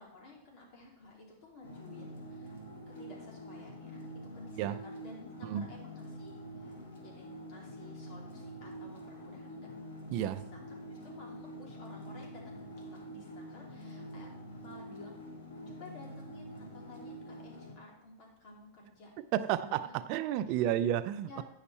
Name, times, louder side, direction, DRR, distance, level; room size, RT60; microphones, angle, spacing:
voice 1, 0.0-2.6 3.0-4.1 4.3-6.7 7.0-9.7 10.2-10.6 10.9-14.3 14.6-15.2 15.7-19.1 19.5-19.9 20.5-20.7 21.3-21.4, left 2 dB, 50° left, 3.1 m, -54 dB
sound 1, 1.6-17.7, equal, 75° left, 2.1 m, -46 dB
voice 2, 10.1-10.4 19.2-21.4, right 11 dB, 50° right, 0.4 m, -31 dB
9.6 x 5.8 x 4.2 m
hypercardioid pair, 120°, 0 cm